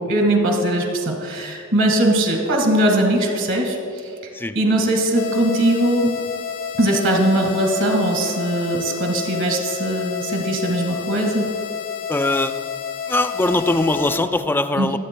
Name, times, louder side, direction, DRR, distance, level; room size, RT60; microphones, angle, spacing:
voice 1, 0.0-6.1 6.8-11.5 14.8-15.0, right 1 dB, 60° right, 2 dB, 1.7 m, -20 dB
sound 1, 5.2-14.2, left 8 dB, 60° left, 0.5 m, -30 dB
voice 2, 12.1-12.5 13.1-15.0, left 2 dB, 10° left, 9 dB, 0.3 m, -21 dB
23.5 x 8.5 x 2.2 m, 2.5 s
head